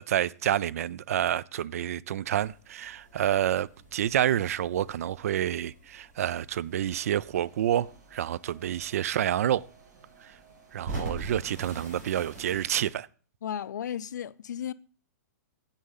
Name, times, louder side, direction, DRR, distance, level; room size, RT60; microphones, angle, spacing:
voice 1, 0.0-9.6 10.2-10.4 10.7-13.1, right 11 dB, 55° right, 0.4 m, -28 dB
sound 1, 2.3-12.9, right 3 dB, 35° right, 5.3 m, -45 dB
sound 2, 6.7-11.9, right 5 dB, 75° right, 2.1 m, -59 dB
voice 2, 13.4-14.7, left 9 dB, 80° left, 0.5 m, -34 dB
8.2 x 6.5 x 5.5 m
hypercardioid pair, 165°, 9 cm